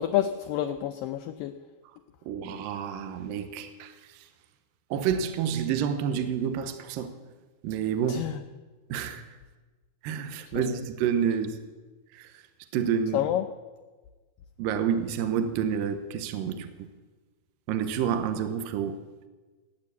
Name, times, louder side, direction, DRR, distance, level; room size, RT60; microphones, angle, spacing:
voice 1, 0.0-1.5 8.1-8.4 10.5-10.8 13.1-13.5, left 12 dB, 85° left, 2.0 m, -28 dB
voice 2, 2.3-3.9 4.9-7.1 7.6-8.3 8.9-9.2 10.0-11.6 12.1-12.3 12.7-13.3 14.6-16.9 17.7-19.0, right 8 dB, 70° right, 2.4 m, -29 dB
17.0 x 9.7 x 8.2 m
omnidirectional pair, 4.7 m